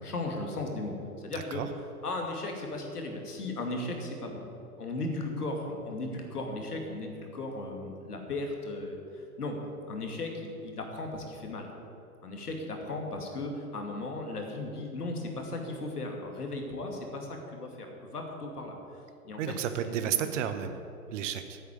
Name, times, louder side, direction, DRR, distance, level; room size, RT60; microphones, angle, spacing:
voice 1, 0.0-1.6 2.0-4.4 4.8-9.6 9.9-11.7 12.2-18.8 19.2-19.9, left 2 dB, 80° left, 2 dB, 2.5 m, -36 dB
voice 2, 19.4-20.8 21.1-21.6, right 9 dB, 50° right, 9 dB, 1.1 m, -32 dB
10.0 x 8.1 x 8.6 m, 2.8 s
figure-of-eight pair, 115°, 45 cm